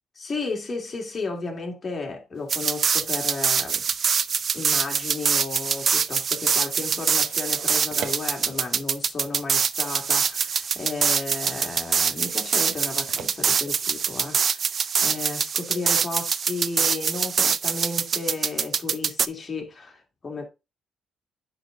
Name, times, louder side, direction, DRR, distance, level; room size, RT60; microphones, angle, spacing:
voice 1, 0.2-3.9 4.5-20.5, left 3 dB, 35° left, 2.6 m, -33 dB
sound 1, 2.3-14.5, right 7 dB, 80° right, 1.0 m, -47 dB
sound 2, 2.5-19.3, right 6 dB, 50° right, 0.4 m, -24 dB
10.0 x 4.1 x 3.8 m
cardioid pair, 90°, 0 cm